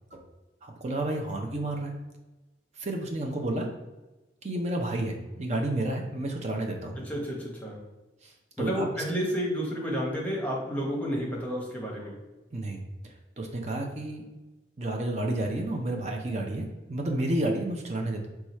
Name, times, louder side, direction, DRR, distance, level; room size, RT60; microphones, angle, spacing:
voice 1, 0.6-1.9 2.8-3.7 4.4-7.0 8.2-8.9 12.5-14.2 14.8-18.3, right 1 dB, 35° right, 2 dB, 0.6 m, -31 dB
voice 2, 7.0-7.8 8.6-12.2, equal, 10° left, -3 dB, 0.9 m, -31 dB
4.7 x 2.4 x 4.2 m, 1.1 s
head